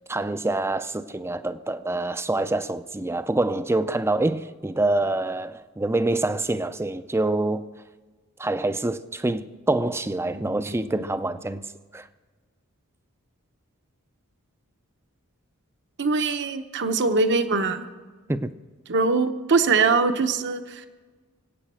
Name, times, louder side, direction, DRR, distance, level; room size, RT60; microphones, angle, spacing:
voice 1, 0.1-7.6 8.4-11.7 11.9-12.1 18.3-18.5, right 2 dB, 10° right, 0.5 m, -26 dB
voice 2, 16.0-17.9 18.9-20.9, right 4 dB, 55° right, 0.9 m, -22 dB
24.5 x 8.6 x 6.2 m
head